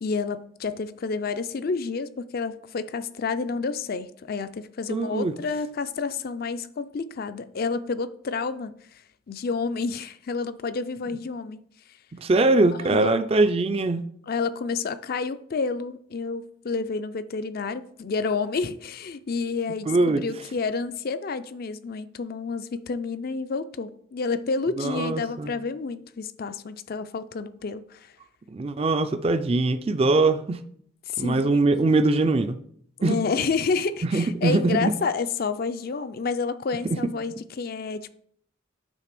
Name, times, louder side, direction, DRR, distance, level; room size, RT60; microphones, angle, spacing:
voice 1, 0.0-9.0 9.3-11.6 12.8-13.2 14.3-28.1 31.1-31.6 33.0-38.1, left 4 dB, 45° left, 0.4 m, -29 dB
voice 2, 4.9-5.3 12.1-14.0 19.9-20.2 24.8-25.5 28.5-30.6 31.2-32.6 33.0-33.1 34.1-34.9, right 2 dB, 30° right, 0.4 m, -22 dB
9.0 x 3.3 x 5.9 m
head